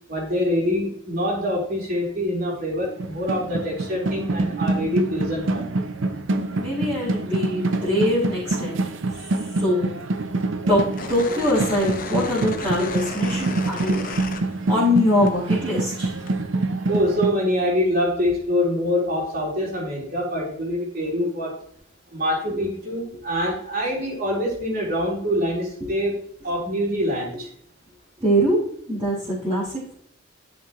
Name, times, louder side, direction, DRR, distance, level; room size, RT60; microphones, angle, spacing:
voice 1, 0.1-5.7 16.9-21.6 22.1-26.2 26.4-27.5, left 1 dB, 45° right, -4 dB, 4.2 m, -25 dB
sound 1, 2.8-17.3, right 2 dB, 70° right, 0.8 m, -26 dB
voice 2, 6.6-8.8 9.2-10.0 10.7-10.8 11.1-14.4 14.7-16.1 22.5-22.6 25.8-25.9 26.4-26.5 27.3-27.4 28.2-28.6 28.9-29.9, left 1 dB, 25° right, -11 dB, 4.1 m, -23 dB
sound 2, 10.9-15.0 15.3-16.3, left 4 dB, 40° left, 1.1 m, -34 dB
11.0 x 6.8 x 3.1 m, 0.63 s
head